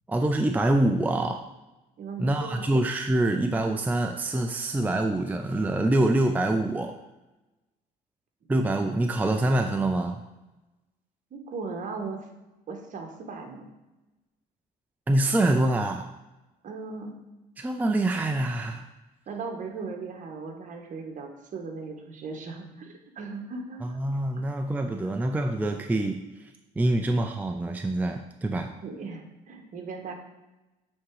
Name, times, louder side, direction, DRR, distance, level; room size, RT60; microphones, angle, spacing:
voice 1, 0.1-1.4 2.2-7.0 8.5-10.2 15.1-16.1 17.6-18.8 23.8-26.2 26.8-28.7, right 1 dB, 10° right, 5 dB, 0.4 m, -25 dB
voice 2, 2.0-2.8 11.3-12.2 12.7-13.6 16.6-17.2 19.3-24.0 25.0-25.1 28.6-30.1, right 4 dB, 50° right, 3 dB, 1.4 m, -38 dB
8.6 x 3.8 x 4.8 m, 1.0 s
cardioid pair, 110°, 17 cm